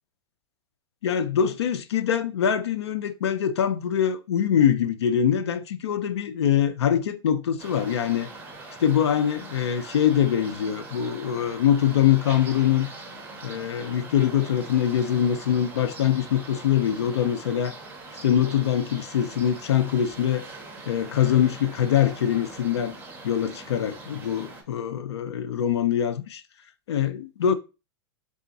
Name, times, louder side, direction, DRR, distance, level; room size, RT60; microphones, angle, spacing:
voice 1, 1.0-8.3 8.8-12.9 13.4-17.7 18.2-20.5 20.9-23.0 23.2-26.4 26.9-27.5, left 9 dB, 90° left, 0.5 m, -23 dB
sound 1, 7.6-24.6, right 3 dB, 15° right, 1.5 m, -42 dB
3.6 x 3.3 x 4.0 m
hypercardioid pair, 120°, 14 cm